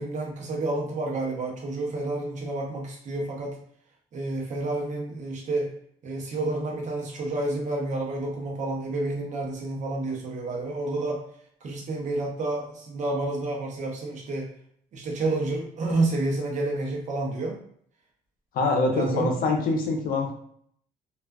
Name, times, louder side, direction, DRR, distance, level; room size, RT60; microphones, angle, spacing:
voice 1, 0.0-3.6 4.1-5.7 6.0-11.2 11.6-14.5 14.9-17.6 18.9-19.4 19.6-19.8, right 2 dB, 45° right, 0 dB, 0.8 m, -29 dB
voice 2, 18.5-20.3, left 3 dB, 60° left, 3 dB, 0.6 m, -24 dB
2.3 x 2.3 x 2.3 m, 0.65 s
cardioid pair, 110°, 17 cm